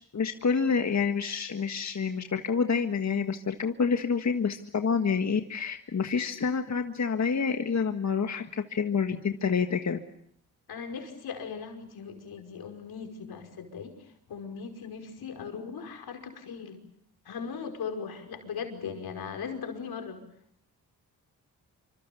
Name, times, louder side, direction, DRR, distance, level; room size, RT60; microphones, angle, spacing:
voice 1, 0.1-10.0, left 5 dB, 45° left, 6 dB, 1.6 m, -28 dB
voice 2, 10.7-16.8 17.3-20.2, left 6 dB, 80° left, 4 dB, 5.4 m, -39 dB
27.0 x 25.5 x 7.0 m, 0.70 s
cardioid pair, 65°, 37 cm